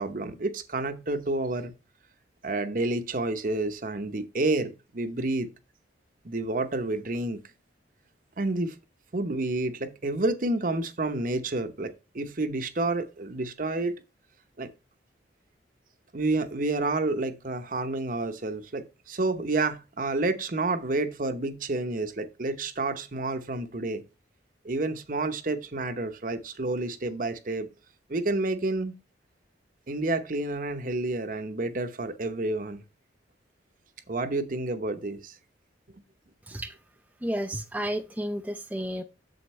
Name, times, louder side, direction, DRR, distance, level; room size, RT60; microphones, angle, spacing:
voice 1, 0.0-1.7 2.4-5.5 6.2-7.4 8.4-8.8 9.1-14.0 14.6-14.7 16.1-24.0 24.6-27.7 28.1-28.9 29.9-32.8 34.1-35.3, right 2 dB, 50° right, 0.9 m, -29 dB
voice 2, 37.2-39.0, equal, 10° right, 0.5 m, -32 dB
7.9 x 7.2 x 3.2 m
head